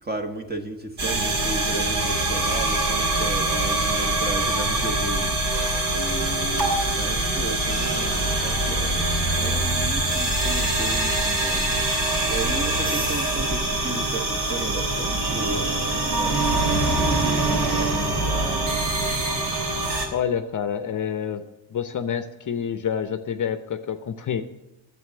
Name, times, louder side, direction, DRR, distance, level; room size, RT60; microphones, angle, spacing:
voice 1, 0.0-9.0 9.4-11.9 12.3-18.8, right 2 dB, 20° right, 5 dB, 1.3 m, -34 dB
sound 1, 1.0-20.1, right 2 dB, 55° right, 3.2 m, -24 dB
voice 2, 20.1-21.4 21.7-24.4, left 8 dB, 40° left, 9 dB, 0.8 m, -27 dB
9.5 x 7.6 x 9.3 m, 0.99 s
cardioid pair, 120°, 47 cm